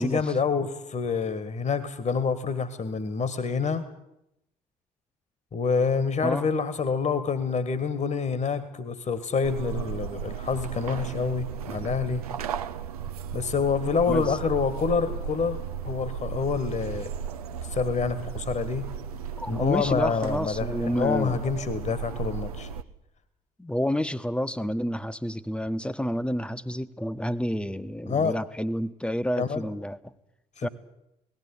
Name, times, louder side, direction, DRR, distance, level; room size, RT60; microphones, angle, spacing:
voice 1, 0.0-3.9 5.5-12.2 13.3-17.1 17.6-18.8 19.5-22.7 28.1-28.3 29.4-29.6 30.6-30.7, left 5 dB, 40° left, 14 dB, 1.7 m, -27 dB
sound 1, 9.4-22.8, right 7 dB, 80° right, 0.8 m, -35 dB
voice 2, 14.1-14.4 19.4-21.4 23.6-30.1 30.6-30.7, equal, 5° left, 13 dB, 1.2 m, -29 dB
19.0 x 15.0 x 9.8 m, 0.85 s
figure-of-eight pair, 45°, 19 cm